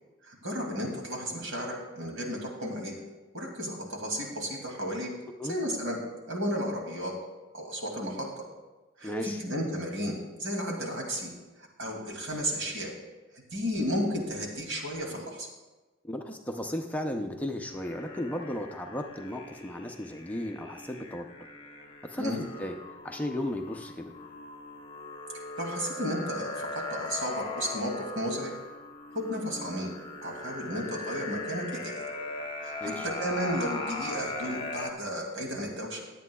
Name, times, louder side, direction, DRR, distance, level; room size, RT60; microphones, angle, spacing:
voice 1, 0.2-2.9 3.3-5.1 5.5-6.0 6.3-7.1 7.5-8.5 9.0-11.3 11.8-12.9 13.5-15.5 22.2-22.4 25.6-28.5 29.1-29.9 30.2-32.0 32.6-36.1, equal, 75° right, 0 dB, 2.4 m, -33 dB
voice 2, 9.0-9.4 16.0-21.3 22.0-22.8 23.0-24.1 32.8-33.1, left 1 dB, 5° left, 3 dB, 0.5 m, -35 dB
sound 1, 17.7-34.9, left 3 dB, 25° left, 0.9 m, -40 dB
20.5 x 8.3 x 2.3 m, 1.2 s
head